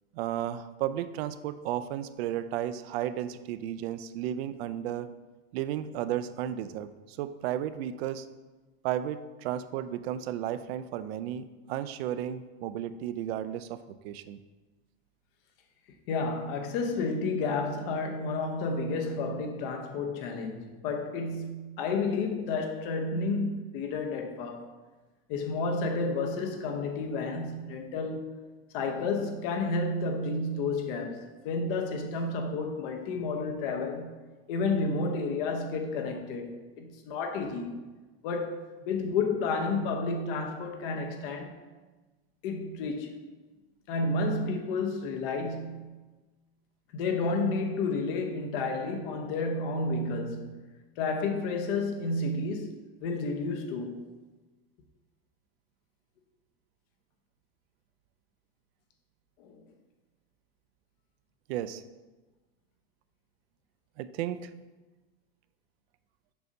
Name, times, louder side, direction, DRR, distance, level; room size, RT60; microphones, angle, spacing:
voice 1, 0.1-5.1 5.5-8.3 8.8-14.4 61.5-61.8 64.0-64.5, right 11 dB, 75° right, 0.5 m, -33 dB
voice 2, 16.1-24.7 25.3-28.3 28.7-34.2 34.5-37.8 38.2-41.6 42.4-43.2 43.9-46.0 46.9-50.7 51.0-54.0 59.4-59.6, left 3 dB, 60° left, 0.9 m, -31 dB
6.8 x 2.7 x 5.2 m
supercardioid pair, 150°, 31 cm